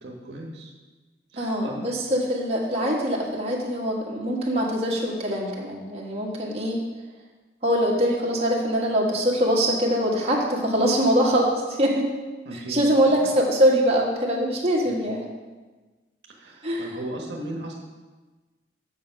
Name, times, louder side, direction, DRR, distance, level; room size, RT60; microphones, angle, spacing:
voice 1, 0.0-0.7 1.3-1.8 12.5-12.9 14.9-15.2 16.3-17.7, right 1 dB, 75° right, 0 dB, 1.2 m, -36 dB
voice 2, 1.4-6.8 7.6-12.1 12.7-15.2 16.6-17.0, equal, 35° right, -3 dB, 1.6 m, -23 dB
8.2 x 6.6 x 5.3 m, 1.3 s
head